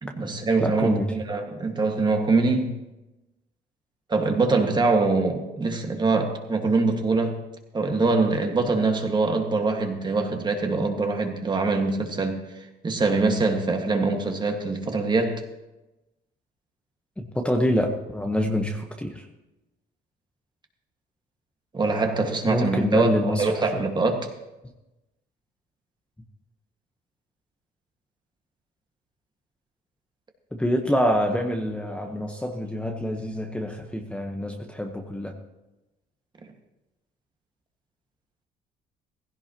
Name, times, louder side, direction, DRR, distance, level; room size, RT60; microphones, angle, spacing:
voice 1, 0.0-2.8 4.1-7.4 7.7-12.4 12.8-15.4 21.7-24.3, right 3 dB, 25° right, 1.8 m, -23 dB
voice 2, 0.6-1.1 17.2-19.2 22.5-23.8 30.5-35.4, equal, 5° left, 1.1 m, -26 dB
16.0 x 16.0 x 3.0 m
cardioid pair, 110°, 17 cm